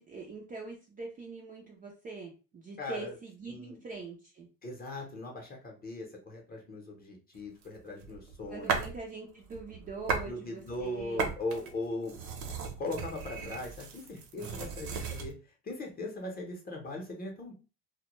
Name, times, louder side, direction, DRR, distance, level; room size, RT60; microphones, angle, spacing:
voice 1, 0.0-4.5 8.5-11.3, right 3 dB, 25° right, -1 dB, 0.3 m, -43 dB
voice 2, 2.8-3.1 3.5-3.8 4.6-8.7 10.2-12.4 12.8-15.3 15.6-17.5, left 2 dB, 25° left, 1 dB, 0.7 m, -39 dB
sound 1, 7.6-9.0 9.4-10.3 10.6-15.3, right 5 dB, 70° right, 0.7 m, -36 dB
2.1 x 2.1 x 2.9 m, 0.34 s
cardioid pair, 125°, 37 cm